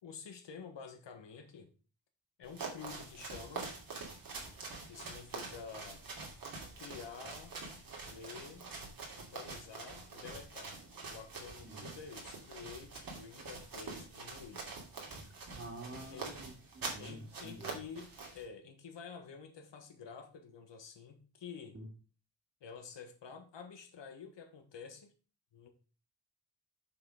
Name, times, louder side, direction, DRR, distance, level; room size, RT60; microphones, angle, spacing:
voice 1, 0.0-1.7 2.4-3.7 4.9-6.0 6.8-7.6 8.0-8.7 9.1-14.7 16.1-16.4 17.0-21.8 22.6-25.1 25.5-25.7, left 6 dB, 80° left, 1.6 m, -49 dB
sound 1, 2.4-18.4, right 3 dB, 50° right, 2.6 m, -45 dB
voice 2, 15.5-17.9 21.7-21.9, right 1 dB, 30° right, 2.5 m, -48 dB
7.0 x 5.8 x 5.0 m
wide cardioid pair, 160°, 43 cm